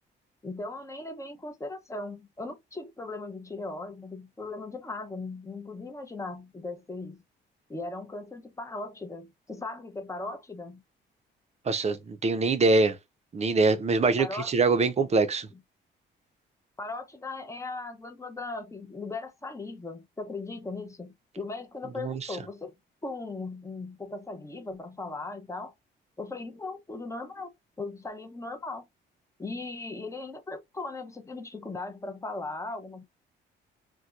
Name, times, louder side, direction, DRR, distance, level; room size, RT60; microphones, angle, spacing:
voice 1, 0.4-7.2 7.7-10.8 14.2-14.5 15.5-15.6 16.8-22.7 23.0-25.7 26.2-27.5 27.8-28.9 29.4-33.0, left 3 dB, 15° left, 0.7 m, -38 dB
voice 2, 11.7-13.0 13.3-15.5 22.0-22.2, right 3 dB, 35° right, 0.6 m, -24 dB
4.3 x 2.2 x 2.4 m
cardioid pair, 90°, 20 cm